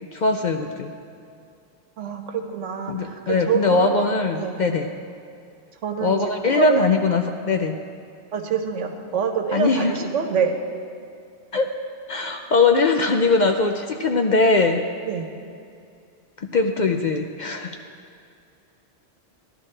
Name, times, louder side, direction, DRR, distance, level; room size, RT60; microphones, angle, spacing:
voice 1, 0.1-0.9 2.9-4.9 6.0-7.8 9.5-9.9 11.5-11.7 12.1-14.8 16.4-17.8, left 3 dB, 55° left, 4 dB, 0.5 m, -21 dB
voice 2, 2.0-3.9 4.3-4.6 5.8-6.1 6.5-6.9 8.3-10.5 15.1-15.3, right 6 dB, 85° right, 5 dB, 1.2 m, -26 dB
14.0 x 11.0 x 3.3 m, 2.4 s
omnidirectional pair, 1.2 m